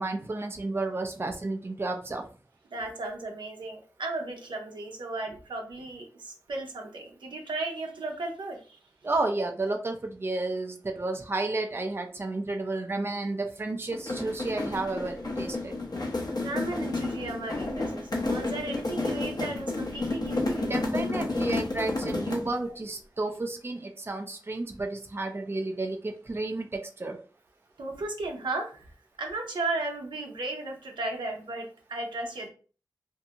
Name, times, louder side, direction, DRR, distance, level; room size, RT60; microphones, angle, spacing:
voice 1, 0.0-2.3 9.0-15.7 20.6-27.2, right 2 dB, 30° right, 4 dB, 0.5 m, -32 dB
voice 2, 2.7-8.8 16.4-20.7 27.8-28.9 29.2-32.5, right 2 dB, 85° right, 1 dB, 0.7 m, -35 dB
sound 1, 13.9-22.6, left 2 dB, 60° left, 0.8 m, -31 dB
2.6 x 2.4 x 2.8 m, 0.38 s
cardioid pair, 45°, 8 cm